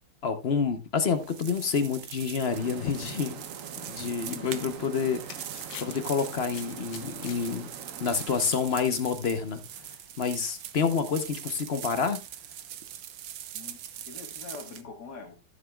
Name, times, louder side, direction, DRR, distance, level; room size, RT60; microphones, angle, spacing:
voice 1, 0.2-3.4 3.9-5.5 5.8-7.7 8.0-9.6 10.2-12.2, left 6 dB, 45° left, 0.9 m, -28 dB
sound 1, 1.1-14.8, right 10 dB, 85° right, 1.5 m, -42 dB
sound 2, 2.5-8.5, right 7 dB, 55° right, 1.0 m, -44 dB
voice 2, 4.2-4.8 13.5-13.8 14.1-15.3, left 5 dB, 65° left, 2.2 m, -43 dB
sound 3, 4.8-10.0, left 8 dB, 85° left, 1.8 m, -49 dB
14.5 x 7.4 x 2.3 m
omnidirectional pair, 2.0 m